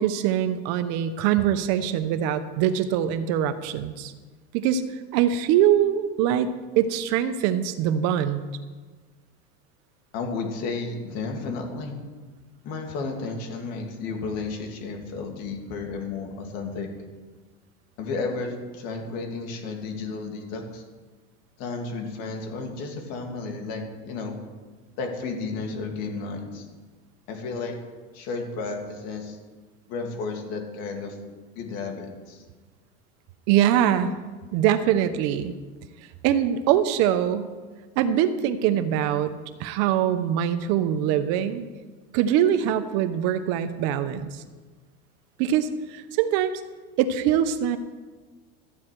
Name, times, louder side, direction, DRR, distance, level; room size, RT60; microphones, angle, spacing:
voice 1, 0.0-4.1 4.5-4.8 5.1-6.5 6.8-8.4 33.5-34.1 34.5-35.5 36.2-37.5 38.0-39.3 39.6-41.7 42.1-44.3 45.4-46.6 47.0-47.8, right 10 dB, 55° right, 10 dB, 0.9 m, -23 dB
voice 2, 10.1-11.9 12.6-16.9 18.0-20.8 21.6-24.4 25.0-26.7 27.3-27.8 28.1-29.4 29.9-31.2 31.5-32.4, left 4 dB, 55° left, 3 dB, 2.5 m, -32 dB
14.0 x 8.8 x 4.7 m, 1.3 s
supercardioid pair, 145°, 31 cm